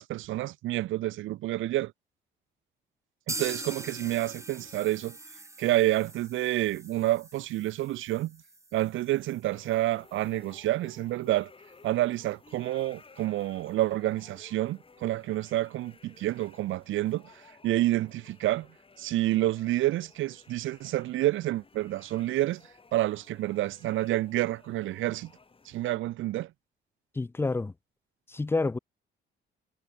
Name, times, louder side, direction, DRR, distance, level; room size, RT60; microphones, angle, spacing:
voice 1, 0.0-1.9 3.3-5.2 5.6-8.4 8.7-11.5 11.8-17.3 17.6-18.7 19.0-22.6 22.9-25.3 25.7-26.5, right 15 dB, 80° right, 0.7 m, -29 dB
sound 1, 3.3-11.0 11.3-11.4 11.7-11.8 12.2-12.3, right 2 dB, 15° right, 3.9 m, -43 dB
sound 2, 9.5-26.0, left 4 dB, 25° left, 3.4 m, -56 dB
voice 2, 27.2-27.7 28.3-28.8, left 3 dB, 10° left, 0.4 m, -28 dB
cardioid pair, 90°, 20 cm